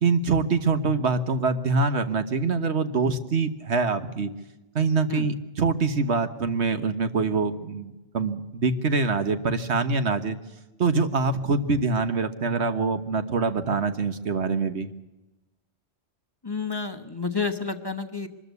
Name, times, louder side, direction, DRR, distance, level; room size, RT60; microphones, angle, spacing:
voice 1, 0.0-4.3 4.7-10.4 10.8-14.9, right 4 dB, 75° right, 9 dB, 1.6 m, -24 dB
voice 2, 16.4-18.3, left 4 dB, 20° left, 6 dB, 1.1 m, -30 dB
23.5 x 13.5 x 8.2 m, 1.1 s
omnidirectional pair, 1.1 m